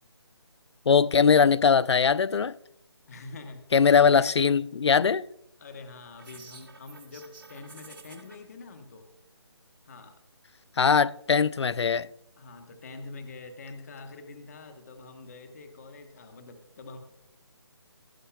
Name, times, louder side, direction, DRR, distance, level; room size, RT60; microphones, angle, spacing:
voice 1, 0.9-2.5 3.7-5.3 10.8-12.1, left 6 dB, 75° left, 0.4 m, -21 dB
voice 2, 3.1-3.6 4.0-4.5 5.6-9.1 9.8-10.2 12.4-17.0, left 3 dB, 35° left, 1.1 m, -45 dB
sound 1, 6.2-8.4, right 4 dB, 55° right, 3.9 m, -50 dB
17.5 x 9.7 x 2.3 m
figure-of-eight pair, 165°, 14 cm